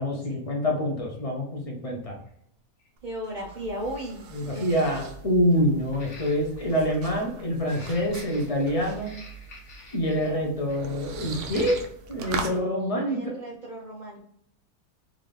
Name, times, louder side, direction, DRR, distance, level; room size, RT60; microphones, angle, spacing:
voice 1, 0.0-2.2 4.3-9.2 9.9-11.8 12.1-13.2, equal, 30° left, -1 dB, 0.7 m, -26 dB
sound 1, 1.2-1.3 2.3-2.4 2.8-2.9 5.9-6.7 7.6-10.4 10.7-10.9 11.5-11.8 12.4-12.5, left 2 dB, 65° left, 1.6 m, -47 dB
sound 2, 3.0-12.6, right 4 dB, 65° right, 0.8 m, -40 dB
voice 2, 3.0-4.6 13.1-14.2, equal, 80° right, -2 dB, 0.4 m, -36 dB
3.7 x 2.8 x 3.2 m, 0.70 s
omnidirectional pair, 1.6 m